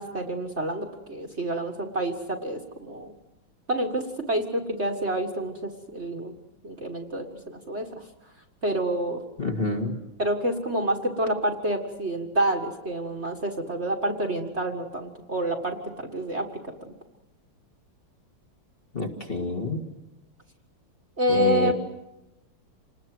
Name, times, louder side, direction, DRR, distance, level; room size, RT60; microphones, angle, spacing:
voice 1, 0.0-3.1 3.7-6.4 6.6-8.1 8.6-9.2 10.2-16.5 21.2-21.7, right 1 dB, 35° right, 4 dB, 1.9 m, -28 dB
voice 2, 9.4-10.0 18.9-19.8 21.3-21.7, left 3 dB, 25° left, 2 dB, 2.2 m, -28 dB
28.0 x 20.0 x 7.8 m, 0.94 s
omnidirectional pair, 2.3 m